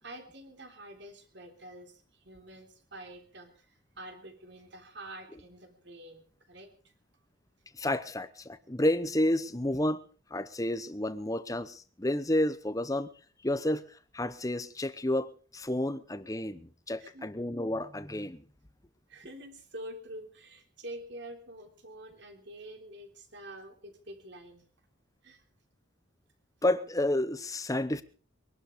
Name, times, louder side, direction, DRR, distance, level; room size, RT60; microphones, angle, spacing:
voice 1, 0.0-6.9 17.0-17.3 19.1-24.7 25.2-25.4, right 1 dB, 55° right, 3.4 m, -47 dB
voice 2, 7.7-10.0 10.3-13.1 13.4-18.4 26.6-28.0, left 1 dB, 15° left, 0.8 m, -30 dB
23.0 x 11.5 x 5.1 m
head